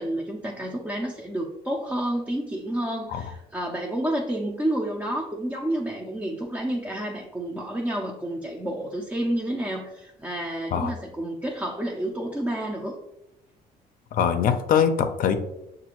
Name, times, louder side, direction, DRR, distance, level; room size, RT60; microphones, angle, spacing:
voice 1, 0.0-13.0, right 1 dB, 10° right, -1 dB, 0.4 m, -30 dB
voice 2, 14.1-15.4, left 8 dB, 55° left, 8 dB, 0.5 m, -22 dB
6.1 x 2.5 x 2.9 m, 0.89 s
cardioid pair, 110°, 17 cm